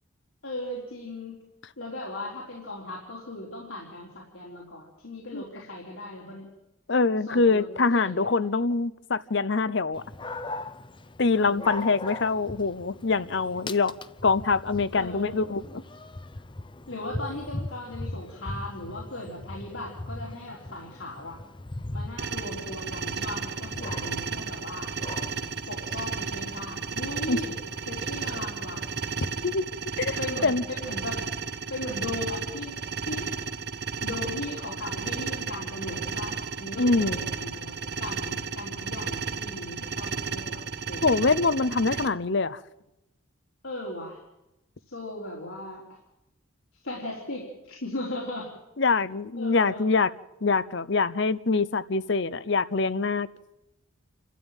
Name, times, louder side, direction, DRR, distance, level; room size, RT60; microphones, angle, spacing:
voice 1, 0.4-1.4 1.8-6.5 7.3-8.4 11.3-11.7 14.9-15.3 16.9-21.4 21.9-24.9 25.7-27.6 27.9-28.9 30.2-31.2 31.7-32.7 33.0-33.3 34.0-37.7 38.0-41.1 43.6-44.2 44.9-45.8 46.8-48.5 49.3-49.8, left 1 dB, 80° left, 4.0 m, -37 dB
voice 2, 6.9-10.0 11.2-13.9 14.2-15.8 27.3-27.4 29.4-29.6 30.0-30.6 36.8-37.2 41.0-42.6 48.8-50.1 50.4-53.3, left 4 dB, 60° left, 0.7 m, -24 dB
Dog, 9.9-29.5, left 2 dB, 25° left, 0.7 m, -40 dB
sound 1, 22.2-42.1, right 5 dB, 50° right, 0.8 m, -33 dB
28.5 x 13.0 x 9.1 m
head